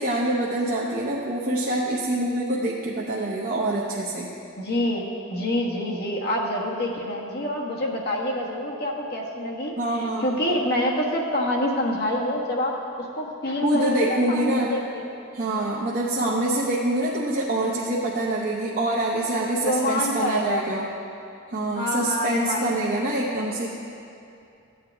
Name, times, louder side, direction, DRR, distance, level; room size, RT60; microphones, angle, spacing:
voice 1, 0.0-4.3 9.8-10.6 13.6-14.8 15.3-20.9 21.5-23.7, right 1 dB, 45° right, -5 dB, 0.8 m, -25 dB
voice 2, 4.6-9.7 10.2-12.8 13.1-15.0 19.6-20.6 21.7-22.7, left 1 dB, 50° left, -2 dB, 1.3 m, -26 dB
14.5 x 8.7 x 3.5 m, 2.7 s
head